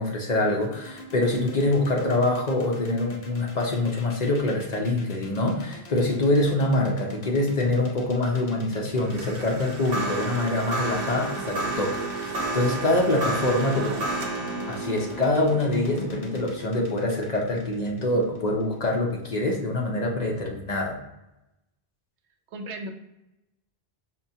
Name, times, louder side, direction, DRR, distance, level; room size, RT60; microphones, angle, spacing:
voice 1, 0.0-13.9 14.7-21.0, left 2 dB, 45° left, -1 dB, 0.6 m, -25 dB
sound 1, 0.6-18.7, left 3 dB, 70° left, 0.9 m, -43 dB
sound 2, 9.0-18.3, right 2 dB, 65° right, 0.9 m, -32 dB
voice 2, 13.7-14.1 22.5-22.9, right 2 dB, 90° right, 4 dB, 0.9 m, -36 dB
5.5 x 2.2 x 2.7 m, 0.91 s
omnidirectional pair, 1.1 m